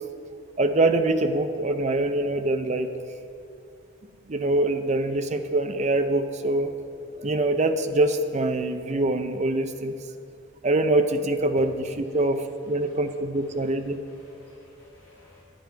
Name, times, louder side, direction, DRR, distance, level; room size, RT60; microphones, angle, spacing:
voice 1, 0.6-2.9 4.3-6.7 7.2-10.0 10.6-14.0, right 2 dB, 35° right, 8 dB, 0.5 m, -24 dB
voice 2, 13.5-15.4, left 4 dB, 10° left, -10 dB, 2.0 m, -54 dB
10.0 x 8.9 x 4.5 m, 2.4 s
head